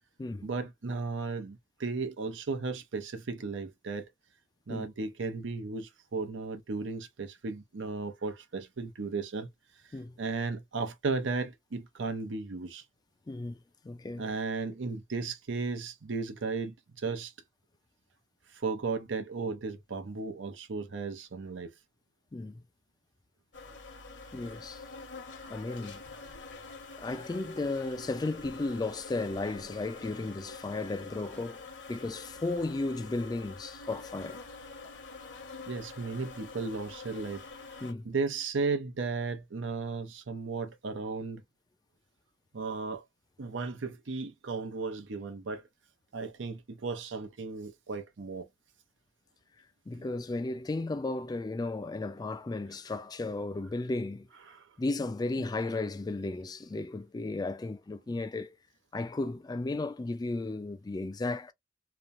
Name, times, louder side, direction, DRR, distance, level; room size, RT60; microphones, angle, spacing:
voice 1, 0.4-4.1 4.7-9.5 10.2-12.8 14.2-17.3 18.5-21.7 35.7-37.4 38.0-41.4 42.5-43.0 43.4-45.6 46.1-48.5 49.9-50.1 54.5-54.6 55.4-55.5, right 4 dB, 85° right, 0.7 m, -35 dB
voice 2, 13.3-13.6 13.8-14.3 22.3-22.5 24.3-24.8 25.5-26.0 27.0-34.4 37.8-38.1 49.9-54.3 54.8-58.6 58.9-61.5, left 2 dB, 20° left, 0.3 m, -34 dB
sound 1, 23.5-37.9, left 4 dB, 70° left, 1.0 m, -46 dB
3.0 x 2.1 x 2.5 m
head